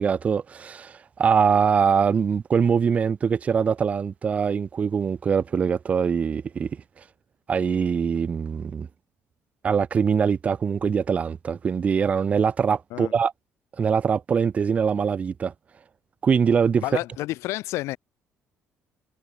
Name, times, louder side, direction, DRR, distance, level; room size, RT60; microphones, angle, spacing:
voice 1, 0.0-6.7 7.5-8.9 9.6-13.3 13.8-15.5 16.2-16.8, right 6 dB, 30° right, 1.2 m, -23 dB
voice 2, 16.8-18.0, left 17 dB, 85° left, 2.3 m, -30 dB
cardioid pair, 155°, 5 cm